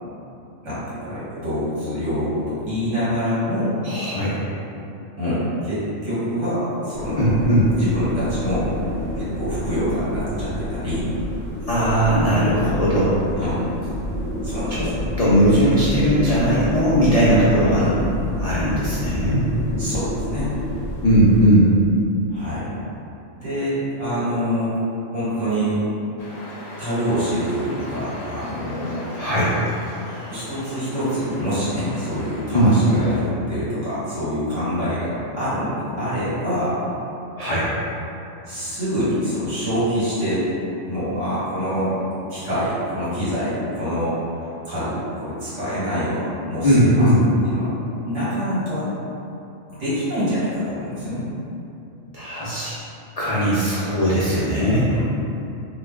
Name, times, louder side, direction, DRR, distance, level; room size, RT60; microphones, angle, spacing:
voice 1, 0.6-3.7 5.2-7.4 7.8-8.7 9.2-11.0 13.4-13.6 14.4-15.0 17.8-18.0 19.8-20.5 22.3-22.7 23.3-24.7 25.1-25.8 26.8-29.1 30.3-36.8 38.5-40.5 40.9-41.9 42.3-47.1 47.5-47.7 48.0-48.9 49.7-51.3 54.9-55.0, equal, 65° right, -12 dB, 1.8 m, -25 dB
voice 2, 3.8-4.4 7.2-7.7 11.7-13.1 14.8-14.9 15.2-17.8 18.4-19.5 21.0-21.7 29.2-29.5 32.5-32.7 37.4-37.7 46.6-47.2 52.1-52.7 53.2-54.9, equal, 90° left, -10 dB, 0.3 m, -18 dB
sound 1, 6.9-21.5, left 1 dB, 30° right, 1.2 m, -29 dB
sound 2, 26.2-33.2, left 1 dB, 60° left, 0.8 m, -38 dB
3.0 x 2.3 x 3.5 m, 2.8 s
omnidirectional pair, 1.4 m